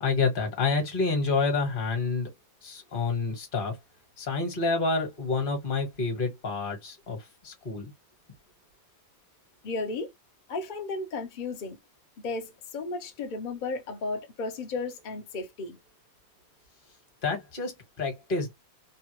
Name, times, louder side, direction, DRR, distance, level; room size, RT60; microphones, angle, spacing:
voice 1, 0.0-2.3 2.6-3.8 4.2-7.9 17.2-18.5, left 4 dB, 35° left, 1.2 m, -28 dB
voice 2, 9.6-10.1 10.5-11.8 12.2-15.8, left 3 dB, 80° left, 0.4 m, -34 dB
3.3 x 2.2 x 2.9 m
omnidirectional pair, 2.0 m